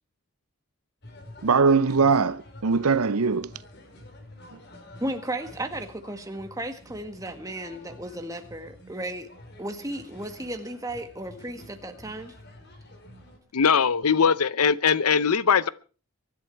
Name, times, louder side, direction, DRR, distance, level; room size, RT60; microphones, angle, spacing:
sound 1, 1.0-13.4, left 1 dB, 50° left, 3.6 m, -48 dB
voice 1, 1.4-3.5, right 5 dB, 85° right, 0.7 m, -21 dB
voice 2, 5.0-9.3 9.6-12.3, right 1 dB, 15° right, 1.7 m, -34 dB
voice 3, 13.5-15.7, left 6 dB, 85° left, 0.7 m, -21 dB
24.0 x 11.0 x 4.6 m
head